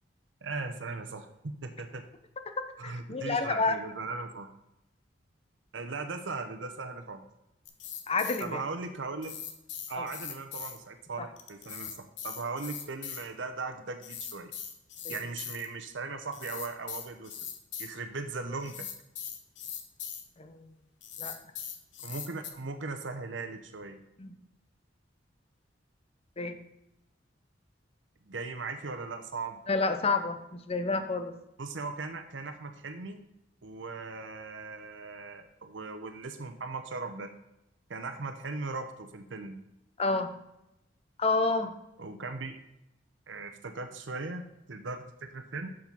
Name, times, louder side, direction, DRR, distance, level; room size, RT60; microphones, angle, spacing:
voice 1, 0.4-2.0 2.8-4.5 5.7-7.2 8.4-9.3 9.9-12.0 12.2-14.5 15.1-17.4 17.8-18.9 22.0-24.0 28.3-29.6 31.6-33.2 33.6-37.3 37.9-39.6 42.0-42.6 43.3-45.7, right 3 dB, 85° right, 7 dB, 0.8 m, -38 dB
voice 2, 2.6-3.8 8.1-8.6 9.9-10.1 11.2-11.3 15.0-15.2 20.4-20.7 21.2-21.3 24.2-24.3 26.4-26.6 29.7-31.3 40.0-40.3 41.2-41.7, left 3 dB, 35° left, 8 dB, 0.8 m, -29 dB
sound 1, 7.6-8.4 9.2-10.8 11.4-13.3 14.0-15.6 16.3-17.9 18.6-20.2 21.0-22.5, left 8 dB, 75° left, 1.1 m, -40 dB
7.4 x 6.2 x 5.3 m, 0.86 s
head